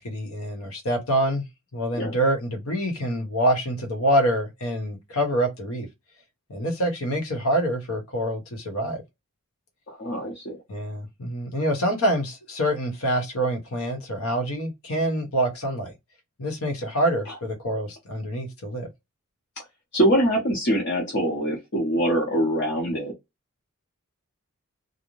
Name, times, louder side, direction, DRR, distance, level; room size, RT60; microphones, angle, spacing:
voice 1, 0.0-1.4 1.7-5.9 6.5-9.0 10.7-15.9 16.4-18.9, right 1 dB, 80° left, 0.9 m, -26 dB
voice 2, 9.9-10.6 19.9-23.1, equal, 55° left, 0.8 m, -23 dB
2.5 x 2.1 x 3.0 m
head